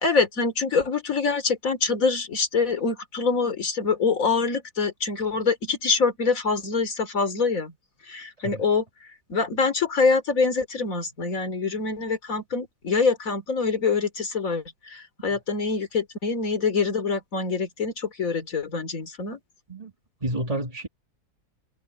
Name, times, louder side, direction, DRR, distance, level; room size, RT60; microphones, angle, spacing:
voice 1, 0.0-7.7 8.1-8.8 9.3-19.4, left 4 dB, 55° left, 3.4 m, -25 dB
voice 2, 20.2-20.9, right 1 dB, 25° right, 2.2 m, -30 dB
omnidirectional pair, 1.7 m